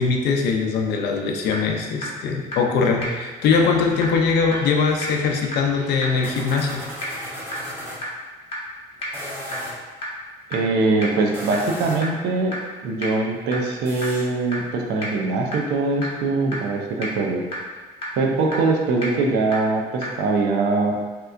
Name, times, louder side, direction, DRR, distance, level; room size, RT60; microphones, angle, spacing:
voice 1, 0.0-6.8, left 5 dB, 75° left, 2 dB, 0.5 m, -21 dB
sound 1, 1.5-1.6 2.0-2.1 2.5-2.6 3.0-3.1 3.5-3.6 4.0-4.1 4.5-4.6 5.0-5.1 5.5-5.6 6.0-6.1 6.5-6.6 7.0-7.1 7.5-7.6 8.0-8.1 8.5-8.6 9.0-9.1 9.5-9.6 10.0-10.1 10.5-10.6 11.0-11.1 11.5-11.6 12.0-12.1 12.5-12.6 13.0-13.1 13.5-13.6 14.0-14.1 14.5-14.6 15.0-15.1 15.5-15.6 16.0-16.1 16.5-16.6 17.0-17.1 17.5-17.6 18.0-18.1 18.5-18.6 19.0-19.1 19.5-19.6 20.0-20.1, left 1 dB, 35° left, 0.8 m, -29 dB
sound 2, 3.8-8.0 9.0-9.8 11.2-12.2 13.8-14.2, equal, 15° right, 1.1 m, -37 dB
voice 2, 10.5-12.5 12.8-17.6 18.2-21.0, right 3 dB, 80° right, 1 dB, 0.5 m, -22 dB
3.2 x 2.9 x 2.5 m, 1.4 s
cardioid pair, 110°, 17 cm